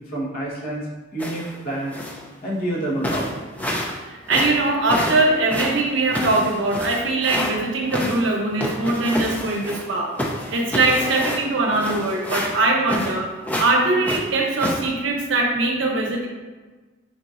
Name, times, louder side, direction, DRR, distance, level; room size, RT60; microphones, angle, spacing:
voice 1, 0.0-1.9 2.4-3.4, right 1 dB, 45° left, -6 dB, 1.1 m, -28 dB
sound 1, 1.2-1.6 1.9-2.3 2.7-2.8 3.0-4.0 4.3-7.5 7.9-9.9 10.2-13.2 13.5-13.7 14.0-14.8, equal, 10° left, 0.3 m, -28 dB
voice 2, 3.9-13.3 13.6-16.3, right 2 dB, 65° right, 0 dB, 0.7 m, -21 dB
4.8 x 4.0 x 2.4 m, 1.3 s
head